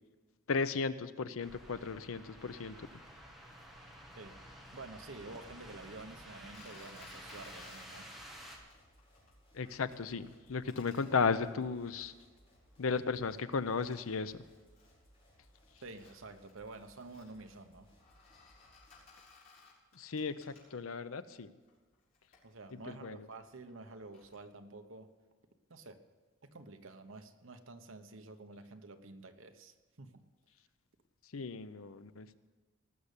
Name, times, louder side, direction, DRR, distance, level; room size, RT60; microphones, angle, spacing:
voice 1, 0.5-2.9 9.5-12.1 12.8-14.4 19.9-21.5 22.7-23.3 31.3-32.3, left 5 dB, 90° left, 13 dB, 0.7 m, -35 dB
sound 1, 1.4-8.6, equal, ahead, 1.8 m, -52 dB
voice 2, 4.7-8.1 15.8-17.9 22.4-25.1 25.7-26.0 26.4-30.2, right 3 dB, 75° right, 8 dB, 1.1 m, -50 dB
sound 2, 6.5-8.7 9.0-9.3 9.6-10.0 10.3-13.0 13.4-13.5 13.7-15.0 15.4-21.0 21.6-24.4, left 4 dB, 45° left, 4.8 m, -61 dB
sound 3, 6.8-19.1, equal, 30° left, 3.8 m, -66 dB
19.0 x 6.7 x 8.3 m, 1.3 s
head